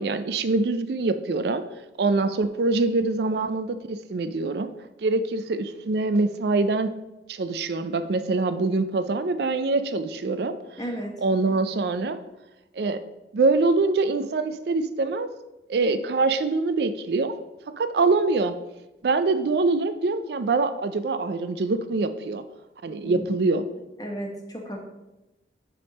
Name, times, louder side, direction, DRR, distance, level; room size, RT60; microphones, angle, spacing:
voice 1, 0.0-1.6 2.0-4.7 5.0-6.9 7.3-10.5 11.2-12.2 12.8-13.0 13.3-15.3 15.7-17.3 17.7-18.5 19.0-22.4 22.8-23.6, right 3 dB, 60° right, 10 dB, 0.4 m, -24 dB
voice 2, 10.8-11.2 23.0-23.2 24.0-24.8, equal, 20° left, 1 dB, 1.2 m, -34 dB
8.3 x 3.6 x 5.2 m, 0.98 s
head